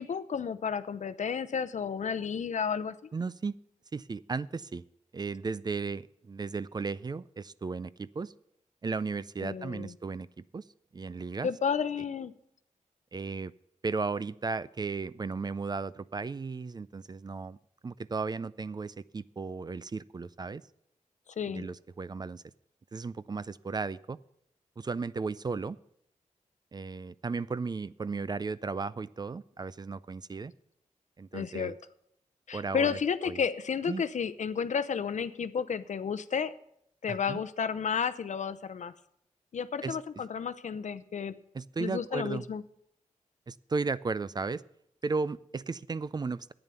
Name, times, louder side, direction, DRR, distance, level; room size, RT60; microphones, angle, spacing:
voice 1, 0.0-2.9 9.4-9.9 11.4-12.3 21.4-21.6 31.3-31.7 32.5-36.5 37.0-38.9 39.5-41.3 41.8-42.6, left 6 dB, 65° left, 13 dB, 0.7 m, -32 dB
voice 2, 3.1-3.6 3.9-4.8 5.1-8.3 8.8-10.7 10.9-11.5 13.1-13.5 13.8-17.6 17.8-20.6 21.5-22.4 22.9-24.2 24.8-25.8 26.7-30.5 31.2-31.7 32.5-33.4 33.9-34.0 37.1-37.4 39.8-40.0 41.5-42.5 43.5-44.6 45.0-46.5, right 4 dB, 30° right, 18 dB, 0.4 m, -35 dB
10.5 x 9.0 x 6.9 m, 0.74 s
cardioid pair, 75°, 13 cm